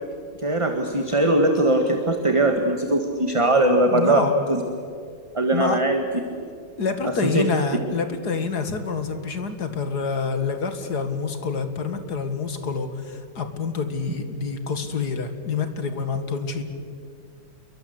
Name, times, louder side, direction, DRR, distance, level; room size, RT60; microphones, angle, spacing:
voice 1, 0.4-4.6 5.3-6.0 7.2-7.4, right 1 dB, 15° right, 4 dB, 1.5 m, -20 dB
voice 2, 3.9-4.3 5.5-5.8 6.8-16.6, left 5 dB, 50° left, 8 dB, 2.3 m, -27 dB
28.5 x 23.0 x 8.0 m, 2.3 s
omnidirectional pair, 2.2 m